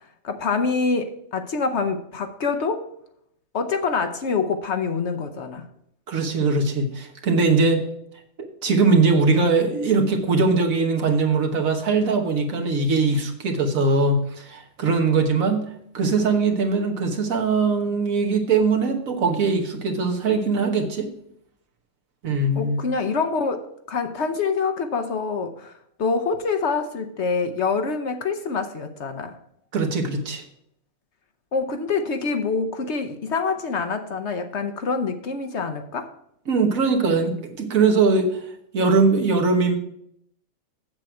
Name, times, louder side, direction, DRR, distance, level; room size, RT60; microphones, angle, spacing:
voice 1, 0.2-2.9 3.5-5.7 22.5-23.6 23.9-25.7 26.0-29.4 31.5-36.1, left 4 dB, 55° left, 7 dB, 1.0 m, -25 dB
voice 2, 6.1-7.8 8.4-15.6 15.9-21.1 22.2-22.8 29.7-30.4 36.5-38.4 38.7-39.8, right 4 dB, 70° right, 3 dB, 1.6 m, -21 dB
7.6 x 7.6 x 4.5 m, 0.72 s
omnidirectional pair, 1.5 m